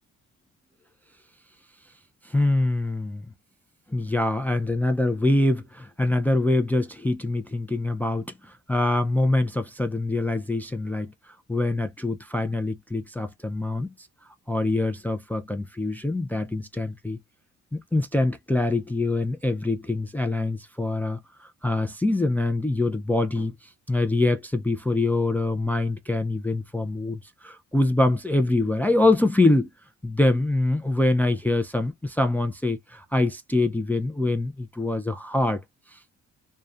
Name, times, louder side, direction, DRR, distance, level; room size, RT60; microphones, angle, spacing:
voice 1, 2.2-3.3 3.9-13.9 14.5-17.2 17.7-23.5 23.9-29.7 30.0-35.6 35.9-36.0, left 2 dB, 5° left, 0.3 m, -24 dB
2.3 x 2.2 x 2.5 m
cardioid pair, 90°, 30 cm